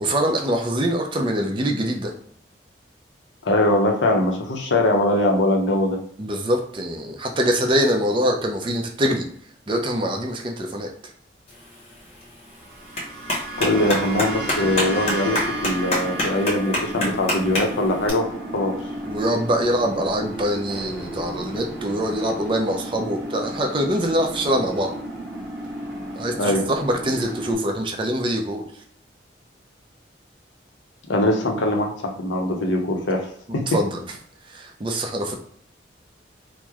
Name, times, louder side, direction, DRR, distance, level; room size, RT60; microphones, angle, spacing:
voice 1, 0.0-2.1 6.2-9.2 9.7-10.9 19.1-24.9 26.2-28.6 33.5-34.0 34.4-35.4, equal, 30° right, 3 dB, 0.4 m, -24 dB
voice 2, 3.4-6.0 13.6-18.3 18.5-18.7 26.4-26.6 31.1-33.3 33.5-33.6, left 1 dB, 85° left, 2 dB, 0.7 m, -21 dB
Clapping, 11.5-18.1, left 1 dB, 35° left, 0.8 m, -29 dB
sound 1, 12.5-21.0, right 2 dB, 60° right, 0.8 m, -35 dB
sound 2, 13.8-27.5, equal, 5° right, 1.0 m, -34 dB
3.0 x 2.0 x 3.5 m, 0.64 s
head